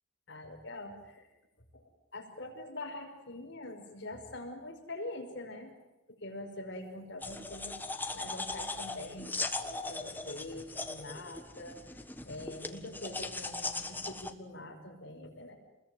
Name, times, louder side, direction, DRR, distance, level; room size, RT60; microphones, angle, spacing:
voice 1, 0.3-1.3 1.7-1.8 2.1-5.7 6.1-7.8 8.1-15.5, left 1 dB, 55° left, 2 dB, 5.6 m, -44 dB
sound 1, 7.2-14.3, left 3 dB, 10° left, 1.5 m, -39 dB
28.5 x 21.5 x 9.4 m, 0.99 s
head